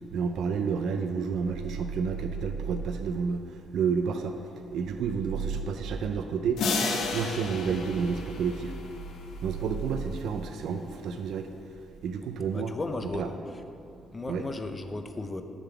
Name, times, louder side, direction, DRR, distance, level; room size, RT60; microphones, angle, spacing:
voice 1, 0.1-6.6 7.1-8.8 9.4-12.7 13.0-13.3 14.3-14.5, right 6 dB, 75° right, 6 dB, 0.3 m, -30 dB
sound 1, 6.6-9.3, left 4 dB, 75° left, 0.7 m, -32 dB
voice 2, 12.5-13.3 14.1-15.4, left 2 dB, 25° left, 7 dB, 0.5 m, -35 dB
6.9 x 3.7 x 5.7 m, 2.5 s
cardioid pair, 90°, 0 cm